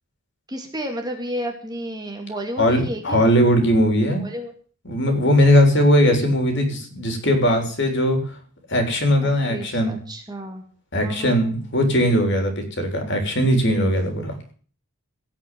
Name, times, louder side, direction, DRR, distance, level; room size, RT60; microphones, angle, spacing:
voice 1, 0.5-3.3 4.2-4.5 9.2-10.6 11.0-11.5, equal, 20° right, 3 dB, 2.3 m, -32 dB
voice 2, 2.6-4.2 4.9-8.2 8.7-10.0 10.9-14.3, equal, 50° left, 4 dB, 3.6 m, -19 dB
17.0 x 6.0 x 9.2 m, 0.44 s
head